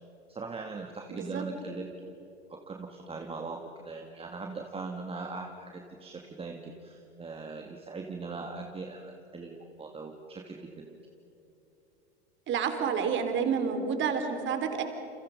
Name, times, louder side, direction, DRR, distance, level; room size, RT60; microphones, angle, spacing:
voice 1, 0.3-2.2 2.5-11.0, right 3 dB, 15° right, 2 dB, 2.3 m, -40 dB
voice 2, 1.1-1.4 12.5-14.8, right 6 dB, 35° right, 6 dB, 3.9 m, -29 dB
30.0 x 29.5 x 5.4 m, 3.0 s
figure-of-eight pair, 85°, 33 cm